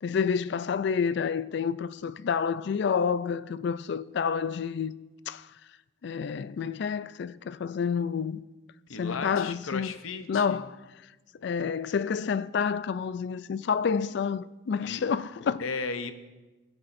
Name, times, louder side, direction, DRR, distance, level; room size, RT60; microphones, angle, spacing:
voice 1, 0.0-4.9 5.3-5.4 6.0-8.4 9.0-9.9 10.3-10.8 11.4-15.6, left 6 dB, 55° left, 0.3 m, -29 dB
voice 2, 8.9-10.7 14.8-15.0 15.6-16.1, left 4 dB, 80° left, 0.7 m, -35 dB
18.5 x 8.7 x 2.6 m
head